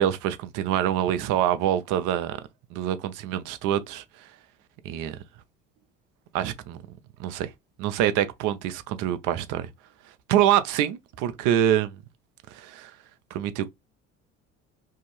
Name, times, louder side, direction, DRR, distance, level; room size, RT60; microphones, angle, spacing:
voice 1, 0.0-2.4 2.7-4.3 4.8-5.2 6.3-6.8 7.2-7.5 7.8-9.7 10.3-12.0 12.5-12.9 13.3-13.7, right 11 dB, 70° right, 0.6 m, -25 dB
2.6 x 2.3 x 3.0 m
hypercardioid pair, 70°, 33 cm